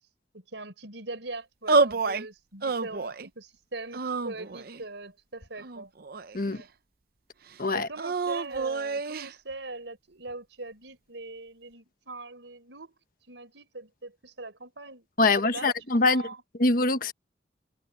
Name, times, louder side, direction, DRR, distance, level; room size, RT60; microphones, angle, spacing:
voice 1, 0.3-5.9 6.4-6.7 7.7-12.9 13.3-15.1 15.4-15.7 16.0-16.4, right 2 dB, 85° right, 4.9 m, -41 dB
sound 1, 1.7-2.3 2.6-3.3 3.9-4.8 5.6-6.6 8.0-9.3, right 4 dB, 55° right, 0.7 m, -28 dB
voice 2, 15.2-16.2 16.6-17.1, left 3 dB, 50° left, 1.3 m, -23 dB
head